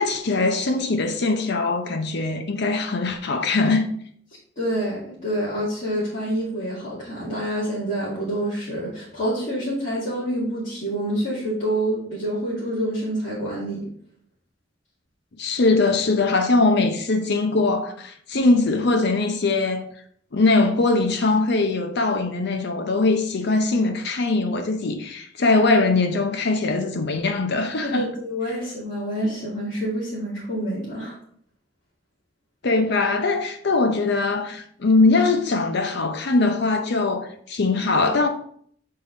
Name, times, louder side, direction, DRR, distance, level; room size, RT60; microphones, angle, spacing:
voice 1, 0.0-3.9 15.4-19.8 20.3-28.1 32.6-38.3, left 3 dB, 60° left, 0.7 m, -21 dB
voice 2, 4.6-13.9 27.8-31.2, right 1 dB, 45° left, 2.3 m, -27 dB
8.5 x 3.8 x 3.8 m
head